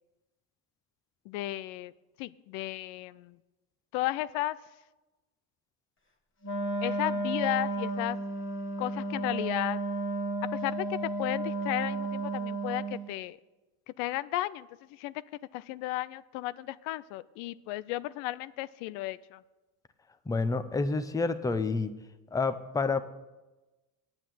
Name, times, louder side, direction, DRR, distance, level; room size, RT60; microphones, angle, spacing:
voice 1, 1.3-1.9 2.2-3.4 3.9-4.6 6.8-8.2 8.8-9.8 10.5-13.4 14.0-15.1 15.5-19.4, left 16 dB, 75° left, 17 dB, 0.6 m, -34 dB
Wind instrument woodwind instrument, 6.4-13.1, right 2 dB, 25° left, 1.8 m, -33 dB
voice 2, 20.3-21.9 22.3-23.0, left 4 dB, 5° left, 11 dB, 0.6 m, -28 dB
9.0 x 8.5 x 7.7 m, 1.1 s
supercardioid pair, 105°, 48 cm